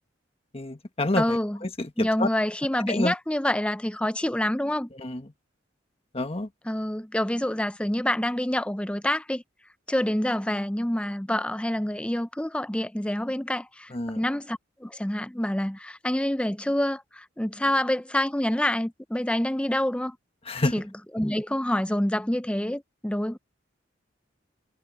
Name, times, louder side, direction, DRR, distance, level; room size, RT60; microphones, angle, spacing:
voice 1, 0.5-2.3 2.9-3.1 5.0-5.3 6.1-6.5 13.9-14.2 20.5-20.7, left 2 dB, 30° left, 1.5 m, -28 dB
voice 2, 1.2-1.6 2.0-4.9 6.7-9.4 9.9-20.2 20.7-20.8 21.1-23.4, left 1 dB, 5° left, 0.6 m, -27 dB
head